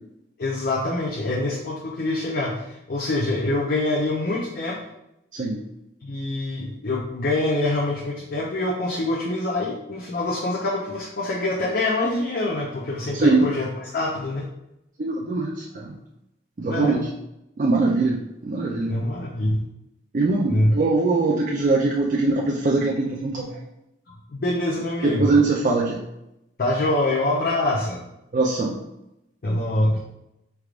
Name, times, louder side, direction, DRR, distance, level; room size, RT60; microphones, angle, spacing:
voice 1, 0.4-4.8 6.0-14.5 16.6-16.9 18.9-19.6 20.5-20.8 24.1-25.3 26.6-28.0 29.4-30.0, left 2 dB, 55° left, -3 dB, 0.5 m, -25 dB
voice 2, 13.1-13.5 15.0-15.9 16.6-17.1 17.6-18.9 20.1-23.6 25.0-26.0 28.3-28.8, right 3 dB, 45° right, -1 dB, 0.4 m, -22 dB
4.6 x 3.4 x 2.4 m, 0.86 s
head